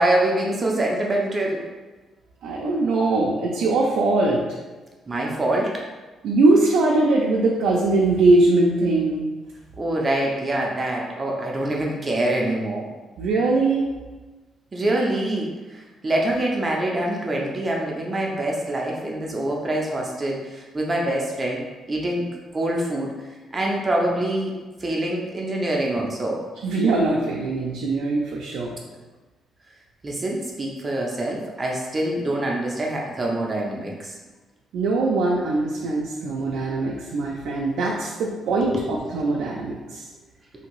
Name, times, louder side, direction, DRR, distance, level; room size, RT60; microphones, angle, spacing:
voice 1, 0.0-1.6 5.1-5.8 9.8-12.9 14.7-23.2 23.5-26.4 30.0-34.2 38.6-38.8, right 1 dB, 30° right, -2 dB, 0.5 m, -25 dB
voice 2, 2.4-4.4 6.2-9.2 13.2-13.9 26.6-28.7 34.7-40.1, right 2 dB, 80° right, -3 dB, 0.4 m, -21 dB
2.8 x 2.6 x 3.0 m, 1.2 s
cardioid pair, 90°, 0 cm